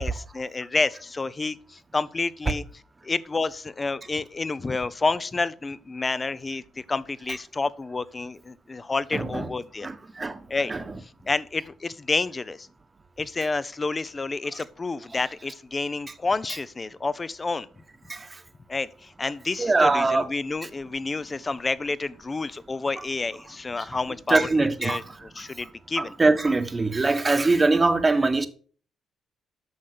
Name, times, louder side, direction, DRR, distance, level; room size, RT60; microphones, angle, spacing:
voice 1, 0.0-2.6 3.0-9.9 10.5-10.7 11.3-12.7 13.2-17.7 18.7-24.5 24.8-25.0 25.4-26.1, left 3 dB, 25° left, 0.7 m, -29 dB
voice 2, 9.1-9.5 9.8-10.4 10.7-11.0 15.1-15.2 18.1-18.3 19.6-20.3 23.0-23.1 24.3-25.0 26.0-28.5, right 3 dB, 25° right, 1.2 m, -22 dB
9.6 x 6.4 x 6.7 m
cardioid pair, 90°, 0 cm